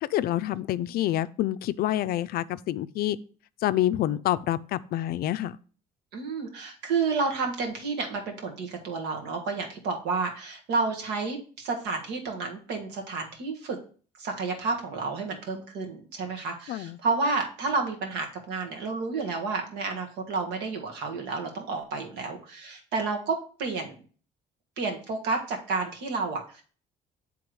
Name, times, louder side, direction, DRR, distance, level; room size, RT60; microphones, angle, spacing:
voice 1, 0.0-3.2 3.6-5.6 16.7-17.0, left 13 dB, 65° left, 0.4 m, -27 dB
voice 2, 6.1-13.8 14.2-24.0 24.8-26.6, right 4 dB, 85° right, 1.6 m, -30 dB
7.7 x 3.5 x 4.8 m
cardioid pair, 110°, 17 cm